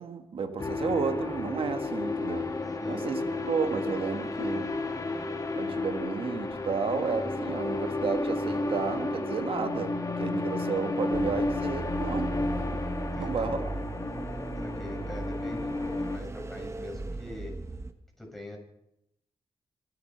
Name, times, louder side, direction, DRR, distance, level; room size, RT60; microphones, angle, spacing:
voice 1, 0.0-2.5 2.8-4.8 5.5-12.4 12.7-12.8 13.2-13.6, right 5 dB, 75° right, 7 dB, 1.7 m, -32 dB
sound 1, 0.6-16.2, left 2 dB, 35° left, 2.2 m, -32 dB
voice 2, 2.8-3.4 13.0-13.7 14.6-17.5 18.2-18.6, left 1 dB, ahead, 0 dB, 6.7 m, -43 dB
sound 2, 11.1-17.9, right 2 dB, 30° right, 1.3 m, -37 dB
27.5 x 11.5 x 4.5 m, 0.81 s
cardioid pair, 65°, 10 cm